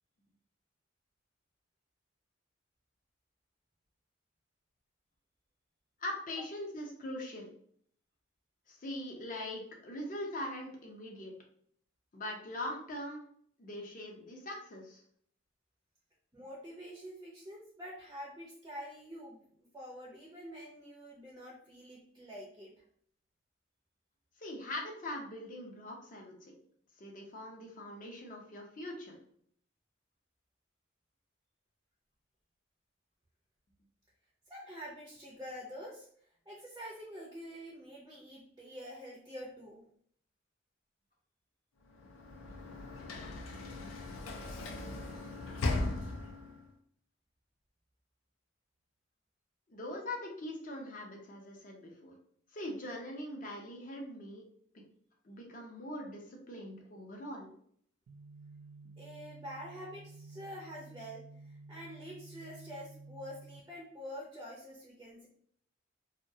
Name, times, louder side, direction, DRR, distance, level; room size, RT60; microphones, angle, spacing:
voice 1, 6.0-7.5 8.7-11.3 12.1-13.2 13.6-15.0 24.4-26.6 27.0-29.2 49.7-52.1 52.5-54.4 54.7-54.8 55.2-57.5, left 1 dB, 45° left, 0 dB, 0.6 m, -42 dB
voice 2, 16.3-19.4 19.7-22.7 34.5-36.1 36.5-39.9 59.0-65.3, equal, 15° right, -3 dB, 0.4 m, -47 dB
Sliding door / Slam, 41.9-46.7, left 2 dB, 90° left, 0.4 m, -38 dB
sound 1, 58.1-63.6, right 3 dB, 85° right, 0.3 m, -52 dB
2.3 x 2.1 x 2.6 m, 0.63 s
head